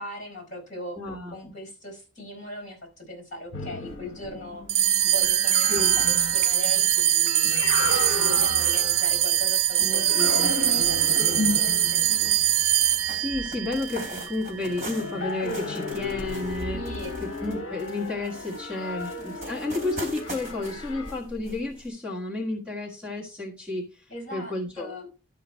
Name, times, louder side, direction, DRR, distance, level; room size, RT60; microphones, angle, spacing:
voice 1, 0.0-1.0 1.3-7.7 8.2-12.3 16.7-17.1 24.1-25.1, left 1 dB, 40° left, 3 dB, 4.4 m, -39 dB
voice 2, 0.9-1.5 5.7-6.0 9.8-10.5 13.1-16.8 17.2-24.0 24.3-25.1, left 2 dB, 5° right, -2 dB, 1.5 m, -32 dB
sound 1, 3.5-9.4 9.9-13.9 14.7-21.2, left 3 dB, 75° left, 0.8 m, -34 dB
sound 2, 3.5-3.6 3.8-21.9, right 2 dB, 35° right, 3.1 m, -44 dB
sound 3, 4.7-15.3, right 11 dB, 75° right, 0.4 m, -23 dB
12.0 x 5.7 x 4.5 m, 0.34 s
head